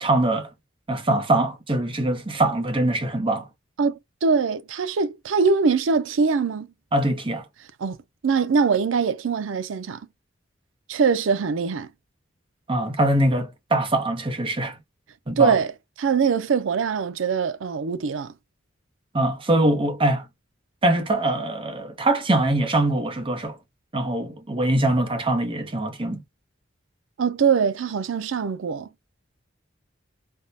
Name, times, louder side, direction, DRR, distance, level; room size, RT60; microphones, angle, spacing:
voice 1, 0.0-0.5 0.9-3.5 6.9-7.4 12.7-14.8 15.3-15.5 19.1-20.3 20.8-23.6 23.9-26.2, right 1 dB, 25° right, 0.7 m, -23 dB
voice 2, 3.8-6.7 7.8-8.0 8.2-10.0 10.9-11.9 15.4-15.7 16.0-18.3 27.2-28.9, right 5 dB, 85° right, 0.5 m, -22 dB
3.5 x 2.1 x 2.6 m
head